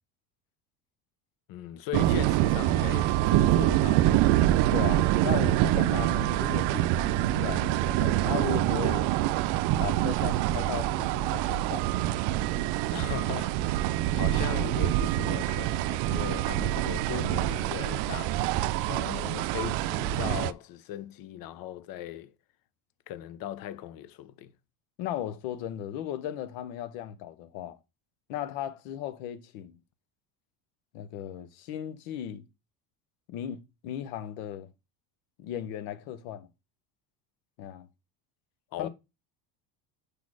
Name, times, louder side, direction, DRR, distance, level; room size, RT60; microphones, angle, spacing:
voice 1, 1.5-4.2 12.9-18.5 18.8-22.3 23.1-24.5 38.7-38.9, left 12 dB, 55° left, 0.7 m, -38 dB
sound 1, 1.9-20.5, right 14 dB, 75° right, 0.5 m, -26 dB
voice 2, 4.7-9.0 9.8-11.9 25.0-27.8 28.3-29.8 30.9-32.4 33.3-34.7 35.4-36.5 37.6-37.9 38.8-38.9, left 11 dB, 90° left, 0.9 m, -36 dB
5.0 x 4.2 x 4.7 m
cardioid pair, 130°, 42 cm